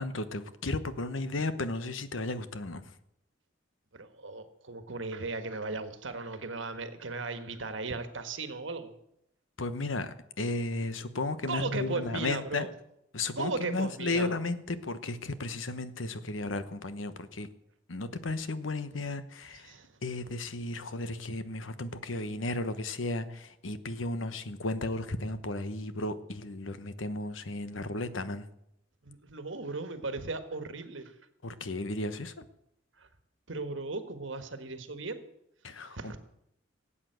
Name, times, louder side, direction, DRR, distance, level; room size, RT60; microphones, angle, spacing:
voice 1, 0.0-3.0 9.6-12.7 13.1-17.5 17.9-19.8 20.0-28.5 31.4-32.4 35.6-36.2, left 2 dB, 90° left, 12 dB, 1.1 m, -34 dB
voice 2, 3.9-9.0 11.5-12.7 13.4-14.3 19.5-20.2 29.0-31.2 32.9-33.1 33.5-35.2 35.7-36.2, right 3 dB, 80° right, 9 dB, 1.5 m, -37 dB
18.0 x 8.6 x 8.0 m, 0.80 s
head